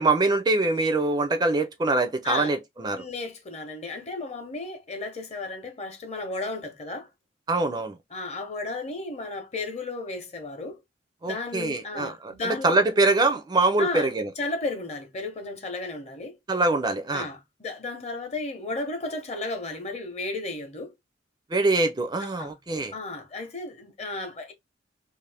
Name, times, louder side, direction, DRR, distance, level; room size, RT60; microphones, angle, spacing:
voice 1, 0.0-3.0 7.5-8.0 11.2-14.3 16.5-17.3 21.5-22.9, right 2 dB, 25° right, 0.4 m, -24 dB
voice 2, 2.9-7.1 8.1-10.8 11.2-12.8 13.8-14.1 14.4-16.4 17.1-20.9 22.2-22.5 22.9-24.5, left 3 dB, 35° left, 0.8 m, -34 dB
2.6 x 2.5 x 3.3 m
head